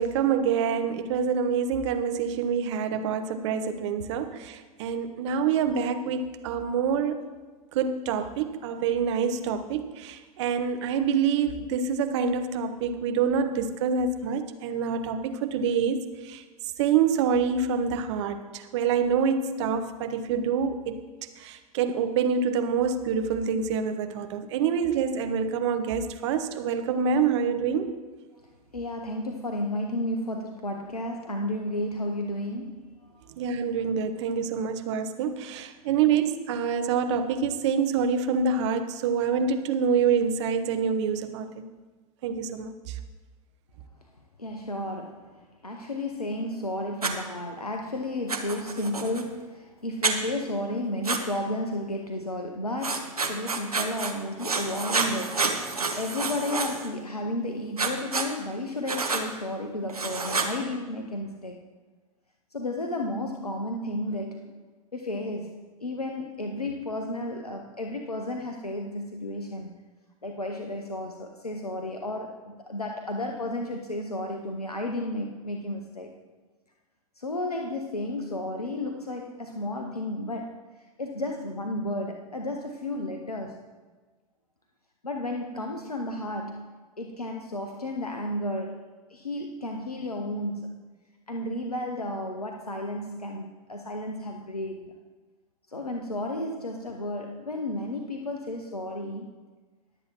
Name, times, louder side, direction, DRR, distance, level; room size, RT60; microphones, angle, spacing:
voice 1, 0.0-7.2 7.7-16.4 16.8-21.0 21.4-27.9 33.4-41.7 42.2-43.0, right 6 dB, 50° right, 8 dB, 1.0 m, -26 dB
voice 2, 28.4-33.3 44.4-61.6 62.5-64.6 64.9-69.7 70.2-76.1 77.2-80.6 81.0-83.6 85.0-90.9 91.3-95.0 95.7-99.3, left 1 dB, 85° left, 4 dB, 0.7 m, -33 dB
Writing, 47.0-47.1 48.3-49.2 50.0-50.2 51.0-51.2 52.8-54.1 54.4-56.9 57.8-58.3 58.9-59.2 59.9-60.5, right 4 dB, 80° right, 1.0 m, -28 dB
21.0 x 8.0 x 3.0 m, 1.4 s
figure-of-eight pair, 90°, 19 cm